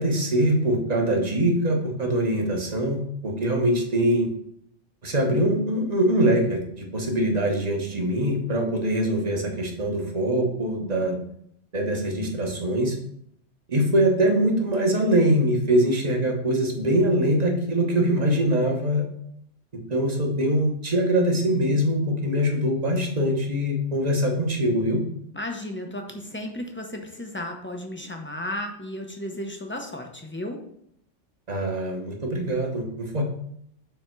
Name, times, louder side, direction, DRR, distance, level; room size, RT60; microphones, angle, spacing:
voice 1, 0.0-4.3 5.0-11.2 11.7-13.0 13.7-19.1 19.7-25.0 31.5-33.2, right 1 dB, 35° right, 1 dB, 1.1 m, -23 dB
voice 2, 25.3-30.6, left 1 dB, 15° left, 3 dB, 0.5 m, -34 dB
7.1 x 3.4 x 4.5 m, 0.71 s
omnidirectional pair, 1.3 m